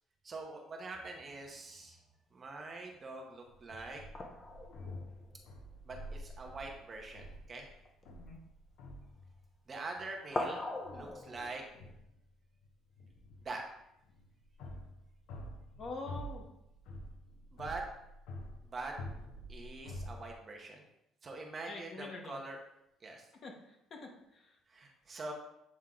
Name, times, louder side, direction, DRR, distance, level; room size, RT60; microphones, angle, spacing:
voice 1, 0.2-2.0 2.3-4.0 5.8-7.7 9.7-10.6 10.9-11.6 13.4-13.6 17.5-17.9 18.6-19.0 19.5-20.8 21.2-22.6 23.0-23.3 24.7-25.3, right 3 dB, 25° right, 1 dB, 0.9 m, -44 dB
sound 1, 0.9-2.1 4.1-6.4 7.3-7.4 7.7-8.4 9.3-9.7 10.1-11.9, left 2 dB, 20° left, 0.7 m, -43 dB
sound 2, 3.5-9.5 9.7-10.5 10.8-12.3 12.6-20.3, left 1 dB, 75° left, 0.9 m, -48 dB
voice 2, 15.8-16.5 21.7-22.4 23.4-24.5, left 3 dB, 40° left, 1 dB, 1.1 m, -46 dB
7.4 x 3.6 x 3.7 m, 0.83 s
cardioid pair, 155°, 0 cm